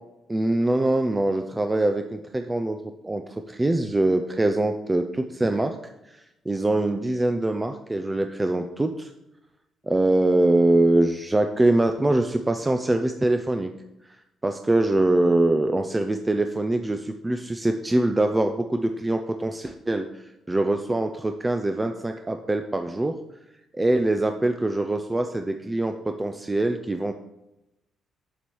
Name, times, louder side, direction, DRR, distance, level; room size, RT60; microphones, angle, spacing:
voice 1, 0.3-2.8 3.0-5.8 6.1-9.1 9.9-13.7 14.4-23.1 23.7-27.1, right 2 dB, 15° right, 6 dB, 0.6 m, -23 dB
7.1 x 7.1 x 4.7 m, 0.89 s
cardioid pair, 90°, 0 cm